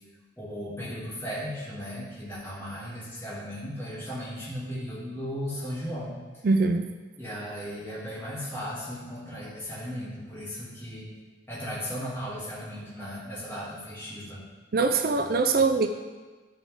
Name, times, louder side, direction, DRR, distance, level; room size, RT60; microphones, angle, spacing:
voice 1, 0.4-6.1 7.2-11.1 11.5-14.4, equal, 15° left, -9 dB, 2.7 m, -36 dB
voice 2, 6.4-6.9 14.7-15.9, right 4 dB, 50° right, 7 dB, 0.4 m, -23 dB
12.5 x 5.4 x 3.7 m, 1.3 s
head